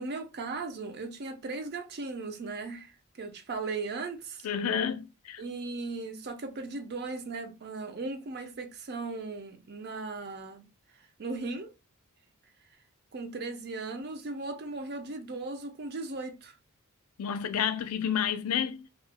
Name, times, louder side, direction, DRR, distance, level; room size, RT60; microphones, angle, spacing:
voice 1, 0.0-2.9 3.2-4.5 5.4-10.6 11.2-11.7 13.1-16.6, right 3 dB, 45° right, 0.5 m, -37 dB
voice 2, 4.4-5.4 17.2-18.9, left 8 dB, 80° left, 0.4 m, -30 dB
2.3 x 2.0 x 3.5 m
head